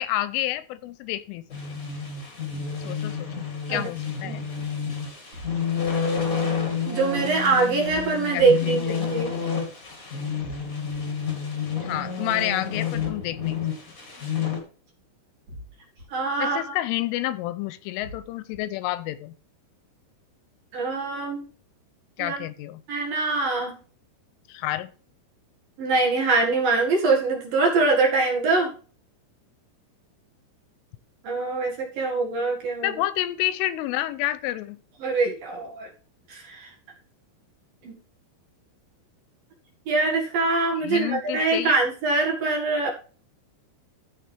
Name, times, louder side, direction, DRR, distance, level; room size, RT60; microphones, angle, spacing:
voice 1, 0.0-1.8 2.8-4.4 8.3-9.2 11.8-13.6 16.4-19.3 22.2-22.8 24.5-24.9 32.8-34.8 40.8-41.8, left 14 dB, 85° left, 15 dB, 3.2 m, -29 dB
sound 1, 1.5-14.6, left 6 dB, 25° left, 2.1 m, -29 dB
sound 2, 5.3-5.9 7.9-8.4 10.4-11.0 12.9-13.5 15.5-16.1 18.0-18.6, left 1 dB, 35° right, 4.3 m, -42 dB
voice 2, 6.9-9.3 16.1-16.6 20.7-21.4 22.2-22.4 22.9-23.8 25.8-28.7 31.2-32.9 35.0-35.9 36.3-36.7 37.8-38.0 39.9-42.9, right 3 dB, 55° right, 0 dB, 3.1 m, -23 dB
14.0 x 6.6 x 3.4 m, 0.39 s
omnidirectional pair, 5.8 m